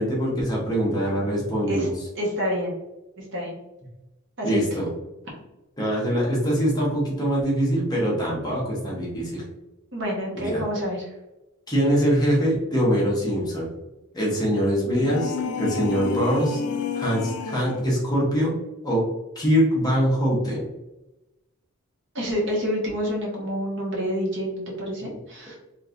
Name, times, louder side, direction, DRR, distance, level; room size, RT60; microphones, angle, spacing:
voice 1, 0.0-1.9 4.4-4.9 5.8-9.4 10.3-10.6 11.7-13.7 14.1-16.6 16.9-18.5 18.8-19.0 19.3-20.7, equal, 20° left, -4 dB, 1.0 m, -23 dB
voice 2, 2.2-2.7 3.2-3.5 4.4-4.6 9.9-11.1 15.4-15.8 22.1-25.6, equal, 55° right, -3 dB, 1.2 m, -28 dB
sound 1, 14.9-17.9, left 6 dB, 90° left, 0.4 m, -30 dB
3.3 x 3.2 x 2.5 m, 0.99 s
head